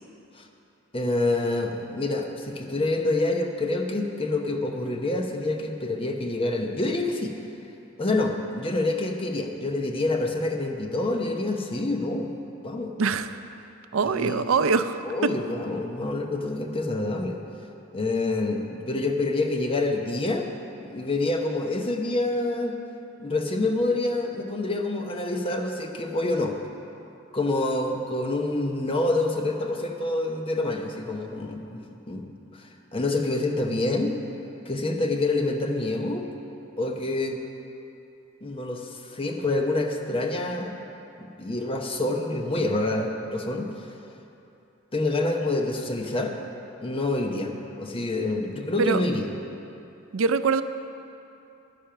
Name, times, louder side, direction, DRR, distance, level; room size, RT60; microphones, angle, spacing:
voice 1, 0.9-7.3 8.0-12.3 12.6-12.9 14.0-14.5 15.0-17.4 17.9-20.5 20.9-22.8 23.2-26.5 27.3-32.3 32.5-34.2 34.7-36.2 36.8-37.4 38.4-40.7 41.2-43.7 44.9-46.4 46.8-47.5 47.8-49.3, left 2 dB, 25° left, 3 dB, 0.9 m, -27 dB
voice 2, 13.0-13.4 13.9-15.0 48.8-49.0 50.1-50.6, right 5 dB, 75° right, 11 dB, 0.5 m, -23 dB
11.0 x 10.0 x 5.8 m, 2.9 s
head